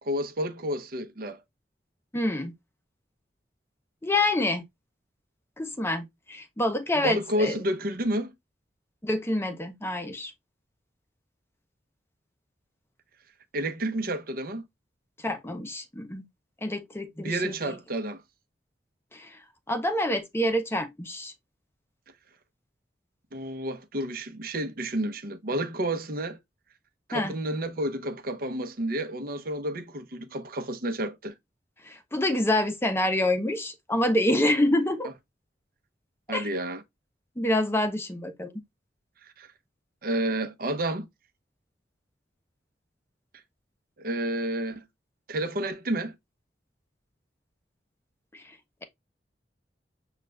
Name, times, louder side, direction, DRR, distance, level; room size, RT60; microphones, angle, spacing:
voice 1, 0.0-1.4 7.0-8.3 13.5-14.6 17.2-18.2 23.3-26.4 27.1-31.3 36.3-36.8 39.2-39.5 40.0-41.1 44.0-44.8 45.3-46.1, right 1 dB, 55° right, 0.8 m, -30 dB
voice 2, 2.1-2.5 4.0-4.6 5.6-7.6 9.0-10.3 15.2-16.2 16.6-17.8 19.1-19.4 19.7-21.3 27.1-27.4 31.8-35.1 36.3-36.5 37.4-38.5 48.3-48.4, left 1 dB, 15° left, 0.6 m, -27 dB
6.5 x 2.4 x 3.3 m
head